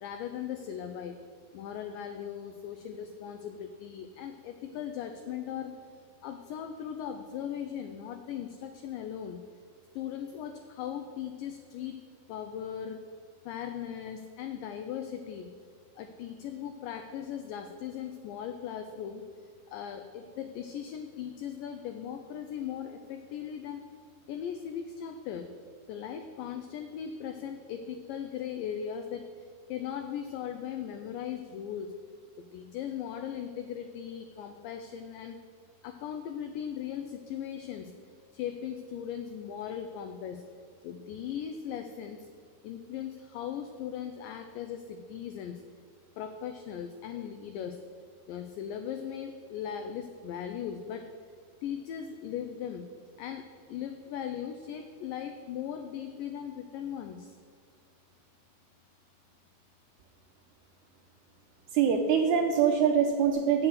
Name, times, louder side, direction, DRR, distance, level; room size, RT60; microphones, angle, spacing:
voice 1, 0.0-1.2 1.5-5.9 6.2-9.4 9.9-12.0 12.3-13.1 13.5-15.5 16.0-23.9 24.3-25.6 25.9-31.9 32.4-35.4 35.8-38.0 38.3-40.5 40.8-42.3 42.6-45.6 46.2-47.9 48.3-51.1 51.6-57.4, left 9 dB, 80° left, 7 dB, 2.1 m, -38 dB
voice 2, 61.7-63.7, right 7 dB, 85° right, 3 dB, 1.7 m, -24 dB
8.0 x 6.8 x 7.2 m, 2.2 s
omnidirectional pair, 4.2 m